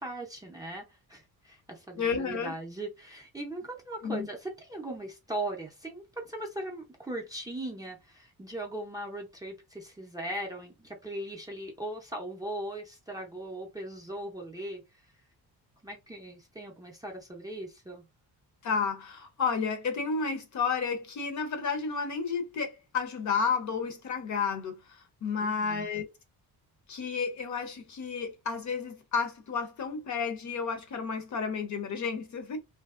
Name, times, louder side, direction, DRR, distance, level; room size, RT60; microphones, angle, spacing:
voice 1, 0.0-14.8 15.8-18.0 25.4-25.9, right 1 dB, 10° right, 0.5 m, -39 dB
voice 2, 2.0-2.5 4.0-4.3 18.6-24.8 25.2-26.1 26.9-32.6, left 5 dB, 45° left, 0.6 m, -31 dB
2.8 x 2.6 x 2.4 m
wide cardioid pair, 180°, 40 cm